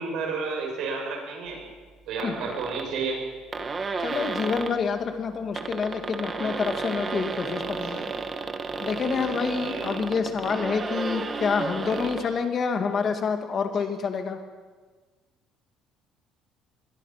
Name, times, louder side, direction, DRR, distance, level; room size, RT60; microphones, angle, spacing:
voice 1, 0.0-1.6 2.1-3.2 7.8-7.9 8.7-9.1 9.5-10.4 11.9-12.0, right 4 dB, 60° right, 1 dB, 7.3 m, -32 dB
sound 1, 2.2-2.9 3.3-3.4 3.5-4.8 5.4-12.3, right 4 dB, 20° right, 1.4 m, -32 dB
voice 2, 4.0-8.1 8.8-14.4, left 5 dB, 30° left, 6 dB, 2.1 m, -27 dB
24.5 x 22.0 x 5.8 m, 1.4 s
cardioid pair, 170°, 0 cm